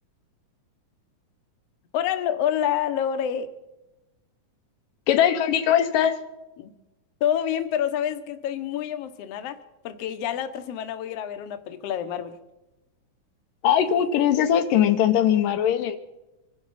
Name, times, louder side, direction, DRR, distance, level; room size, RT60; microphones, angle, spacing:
voice 1, 1.9-3.5 6.6-6.7 7.2-9.6 9.8-12.4, left 9 dB, 65° left, 9 dB, 1.7 m, -27 dB
voice 2, 5.1-6.2 13.6-16.0, left 10 dB, 80° left, 7 dB, 2.6 m, -20 dB
25.5 x 11.0 x 4.2 m, 0.98 s
omnidirectional pair, 3.9 m